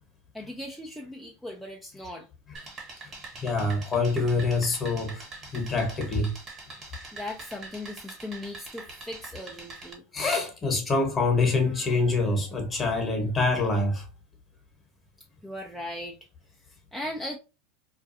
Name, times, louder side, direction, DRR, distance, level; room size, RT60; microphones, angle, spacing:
voice 1, 0.3-2.3 7.1-10.0 15.4-16.2 16.9-17.4, left 1 dB, ahead, 0.4 m, -38 dB
sound 1, 2.5-9.9, right 3 dB, 30° right, 0.9 m, -44 dB
voice 2, 3.4-5.2 5.5-6.3 10.1-14.0, left 3 dB, 25° left, 1.0 m, -25 dB
2.4 x 2.2 x 2.7 m
hypercardioid pair, 100°, 0 cm